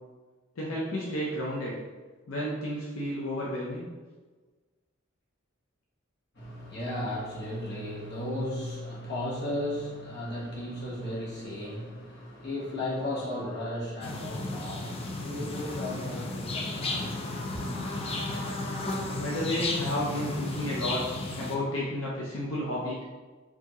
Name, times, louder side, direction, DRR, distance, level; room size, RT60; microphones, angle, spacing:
voice 1, 0.6-1.8 2.3-3.9 19.1-21.0 21.4-23.0, left 1 dB, 70° left, -5 dB, 0.6 m, -32 dB
voice 2, 6.3-17.8, left 1 dB, 55° left, -6 dB, 1.3 m, -35 dB
sound 1, 14.0-21.6, left 2 dB, 30° left, 0.4 m, -33 dB
4.4 x 2.8 x 2.9 m, 1.3 s
head